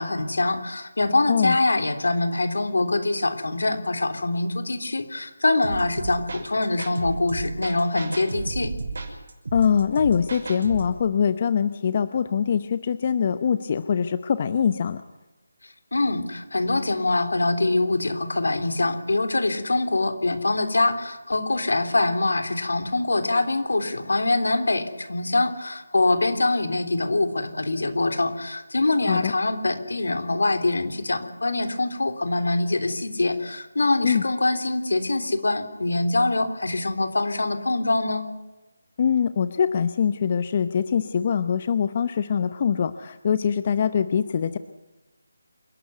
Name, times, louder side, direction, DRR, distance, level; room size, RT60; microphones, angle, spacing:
voice 1, 0.0-8.7 15.6-38.2, left 2 dB, 75° left, 7 dB, 3.4 m, -24 dB
sound 1, 5.6-10.9, right 3 dB, 60° right, 5.7 m, -33 dB
voice 2, 9.5-15.0 29.1-29.3 34.0-34.2 39.0-44.6, left 7 dB, 35° left, 12 dB, 0.8 m, -23 dB
27.5 x 12.0 x 9.5 m, 1.1 s
figure-of-eight pair, 165°, 0 cm